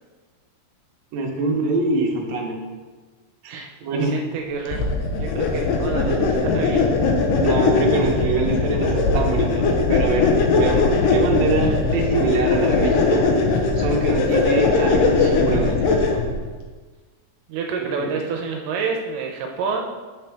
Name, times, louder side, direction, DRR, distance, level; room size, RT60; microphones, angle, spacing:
voice 1, 1.1-2.7 3.4-3.5 3.8-4.1 7.4-16.2 18.0-18.2, right 2 dB, 65° right, 0 dB, 1.8 m, -25 dB
voice 2, 3.5-6.9 7.3-7.5 17.5-20.0, right 5 dB, 85° right, 1 dB, 2.2 m, -29 dB
sound 1, 4.7-16.4, left 3 dB, 90° left, 2.4 m, -20 dB
7.2 x 5.5 x 3.4 m, 1.4 s
omnidirectional pair, 3.8 m